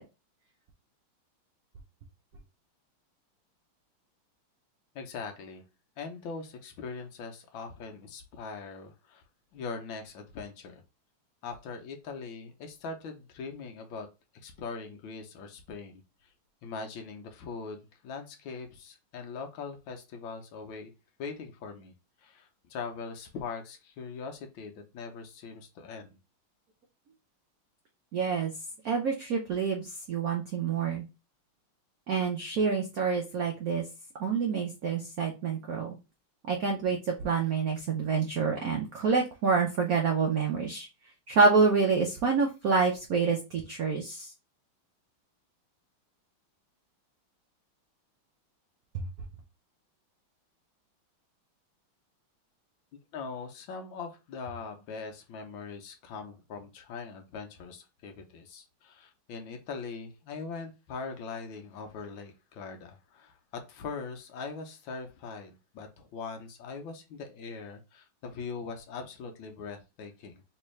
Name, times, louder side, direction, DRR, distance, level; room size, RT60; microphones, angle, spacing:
voice 1, 4.9-5.6 6.0-9.2 9.5-10.8 11.4-14.1 14.4-16.0 16.6-17.8 18.0-20.9 21.2-21.9 22.2-26.2 53.1-70.4, left 4 dB, 70° left, 4 dB, 1.4 m, -41 dB
voice 2, 28.1-28.5 28.8-31.0 32.1-33.8 34.2-36.0 36.5-37.0 37.2-40.9 41.3-44.3 48.9-49.0, right 5 dB, 90° right, 1 dB, 0.7 m, -27 dB
3.4 x 3.2 x 3.1 m, 0.28 s
omnidirectional pair, 2.4 m